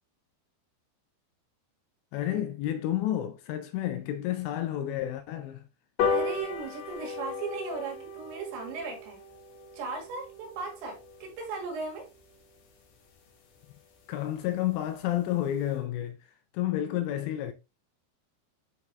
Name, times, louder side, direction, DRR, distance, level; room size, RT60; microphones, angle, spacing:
voice 1, 2.1-5.6 14.1-17.5, left 12 dB, 85° left, 2.7 m, -30 dB
sound 1, 6.0-12.7 13.2-13.3 13.6-13.7 14.0-14.1 14.4-14.5 14.7-15.0 15.4-15.5, left 4 dB, 60° left, 2.7 m, -35 dB
voice 2, 6.1-9.2 9.7-12.1, right 4 dB, 75° right, 3.9 m, -37 dB
10.5 x 4.1 x 2.2 m
omnidirectional pair, 5.2 m